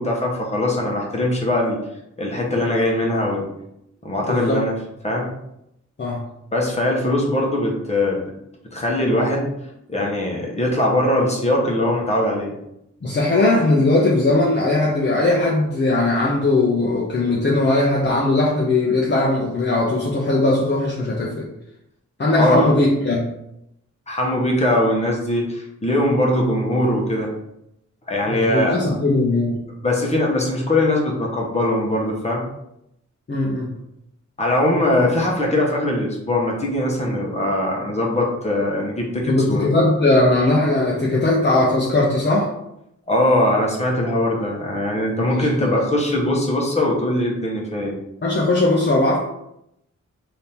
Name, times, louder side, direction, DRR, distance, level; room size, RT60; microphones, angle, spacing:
voice 1, 0.0-1.8 2.2-3.5 4.0-4.8 5.0-5.3 6.5-8.2 8.7-9.5 9.9-12.5 22.3-22.7 24.1-27.3 28.1-28.8 29.8-32.4 34.4-39.7 43.1-47.9, left 1 dB, 20° left, -2 dB, 1.0 m, -21 dB
voice 2, 4.3-4.6 6.0-6.2 13.0-21.5 22.2-23.2 28.3-29.6 33.3-33.7 39.3-42.5 45.2-45.7 48.2-49.2, left 2 dB, 35° left, -4 dB, 0.8 m, -19 dB
3.5 x 2.8 x 4.3 m, 0.81 s
wide cardioid pair, 100°, 30 cm